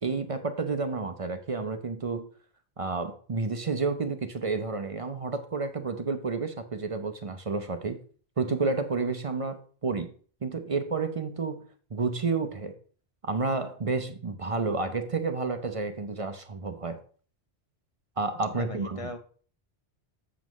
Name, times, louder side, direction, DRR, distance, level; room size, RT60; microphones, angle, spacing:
voice 1, 0.0-2.3 2.8-8.0 8.4-10.1 10.4-11.6 11.9-12.7 13.2-17.0 18.2-19.1, right 4 dB, 35° right, 8 dB, 0.6 m, -30 dB
voice 2, 18.5-19.2, left 2 dB, 35° left, 6 dB, 0.6 m, -38 dB
7.5 x 7.3 x 3.1 m, 0.43 s
omnidirectional pair, 1.2 m